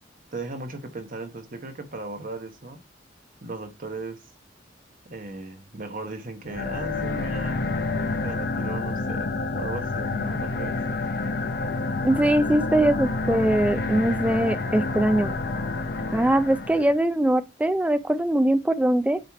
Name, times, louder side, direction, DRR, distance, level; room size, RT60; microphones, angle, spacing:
voice 1, 0.3-2.8 3.4-4.3 5.0-7.7 8.2-10.8, right 2 dB, 45° right, 1.0 m, -36 dB
sound 1, 6.5-16.9, left 3 dB, 55° left, 0.7 m, -28 dB
voice 2, 12.0-15.3 16.1-19.2, right 1 dB, 5° right, 0.4 m, -22 dB
9.0 x 3.1 x 4.7 m
head